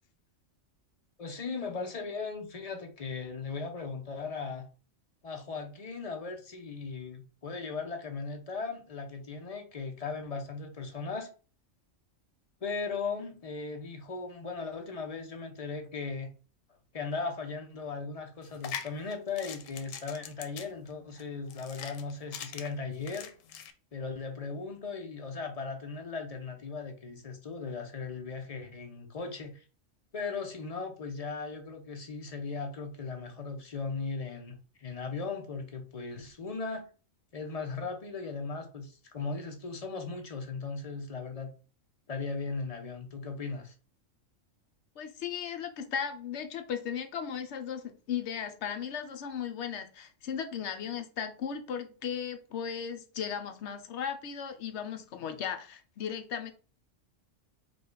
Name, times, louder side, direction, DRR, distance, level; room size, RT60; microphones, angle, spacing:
voice 1, 1.2-4.7 5.2-11.3 12.6-16.3 16.9-23.3 23.9-29.6 30.1-36.8 37.3-41.5 42.1-43.7, left 4 dB, 35° left, 0.6 m, -37 dB
sound 1, 18.4-23.7, left 8 dB, 90° left, 1.0 m, -43 dB
voice 2, 45.0-56.5, left 8 dB, 65° left, 0.8 m, -36 dB
5.0 x 2.3 x 3.8 m
omnidirectional pair, 1.3 m